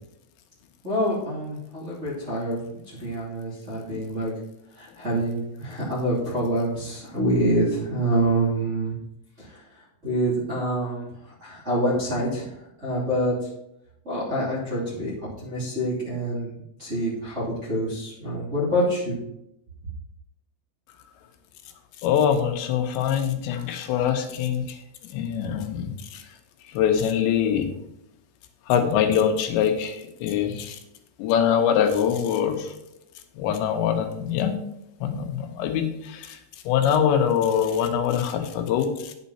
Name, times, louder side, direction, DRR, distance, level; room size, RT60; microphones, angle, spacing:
voice 1, 0.8-4.3 4.8-8.9 9.4-9.5 10.0-11.0 11.4-12.4 12.8-13.3 14.0-15.1 15.4-16.5 16.8-19.2, right 1 dB, 20° right, -9 dB, 2.4 m, -26 dB
voice 2, 22.0-24.8 25.1-26.2 26.7-27.7 28.7-30.8 31.2-32.7 33.4-34.6 35.0-36.4 36.7-39.1, left 8 dB, 90° left, 6 dB, 3.3 m, -23 dB
9.4 x 7.3 x 4.2 m, 0.81 s
omnidirectional pair, 5.0 m